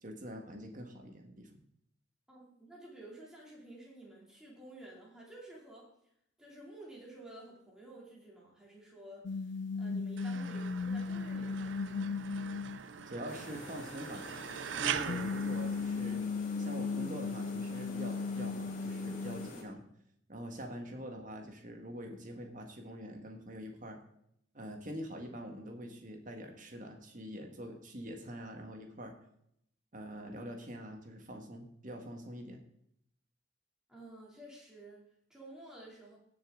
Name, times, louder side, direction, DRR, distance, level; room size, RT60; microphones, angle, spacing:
voice 1, 0.0-1.6 13.0-14.3 14.8-16.2 16.6-19.8 20.3-24.0 24.5-29.2 29.9-32.6, equal, 40° right, 3 dB, 1.7 m, -44 dB
voice 2, 2.3-5.9 6.4-12.2 33.9-36.2, right 1 dB, 5° right, -5 dB, 3.0 m, -52 dB
sound 1, 9.2-13.2 15.0-19.5, left 4 dB, 60° left, 0.4 m, -36 dB
sound 2, 10.2-16.5, right 8 dB, 70° right, 0.5 m, -42 dB
sound 3, 13.3-19.6, left 1 dB, 45° left, 2.7 m, -48 dB
17.0 x 6.9 x 3.8 m, 0.74 s
head